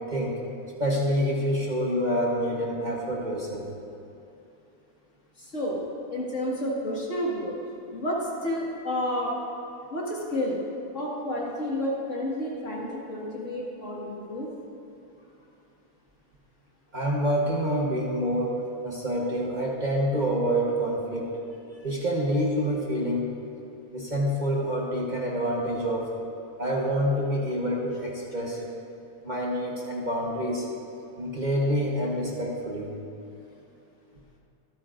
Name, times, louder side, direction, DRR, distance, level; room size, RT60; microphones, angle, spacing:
voice 1, 0.1-0.4 0.8-3.7 16.9-21.3 21.8-23.3 23.9-26.1 26.6-28.6 29.2-30.7 31.2-32.9, equal, 30° right, -3 dB, 1.3 m, -27 dB
voice 2, 5.4-5.8 6.1-7.6 7.9-9.3 9.9-10.6 10.9-14.5 21.7-21.8, left 1 dB, 55° left, -4 dB, 2.2 m, -30 dB
24.5 x 9.2 x 2.6 m, 2.8 s
omnidirectional pair, 1.6 m